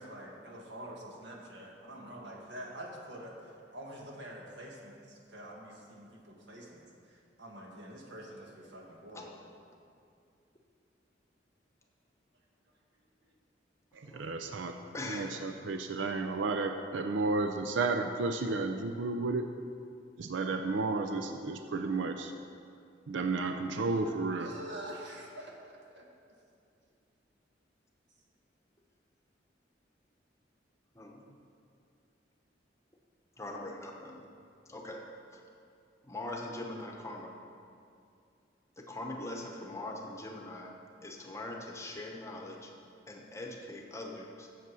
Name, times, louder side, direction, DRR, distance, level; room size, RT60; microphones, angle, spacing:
voice 1, 0.0-9.4 13.2-13.3 24.4-26.1, right 1 dB, 65° right, -1 dB, 1.7 m, -46 dB
voice 2, 13.9-14.7 15.1-19.5 20.2-22.3 23.1-24.5, right 3 dB, 85° right, 5 dB, 0.5 m, -32 dB
voice 3, 14.9-15.4 15.7-15.8 30.9-31.2 33.4-34.3 34.7-35.0 35.3-35.4 36.0-37.3 38.8-40.7 41.0-42.7 43.1-44.5, left 2 dB, 15° left, 1 dB, 0.9 m, -42 dB
8.3 x 7.4 x 6.2 m, 2.4 s
head